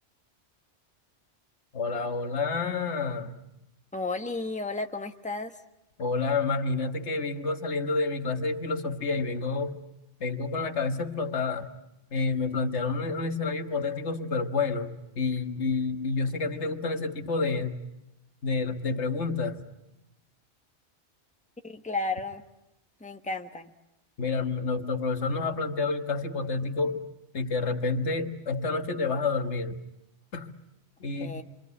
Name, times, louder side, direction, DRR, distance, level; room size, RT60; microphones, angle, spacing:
voice 1, 1.7-3.4 6.0-9.8 10.2-11.7 12.1-17.8 18.4-19.6 24.2-27.1 27.3-29.8 30.3-30.5 31.0-31.4, left 4 dB, 80° left, 1.8 m, -29 dB
voice 2, 3.9-5.6 21.6-22.4 23.0-23.7 31.2-31.4, left 3 dB, 5° left, 1.3 m, -33 dB
27.0 x 25.5 x 8.3 m
omnidirectional pair, 1.2 m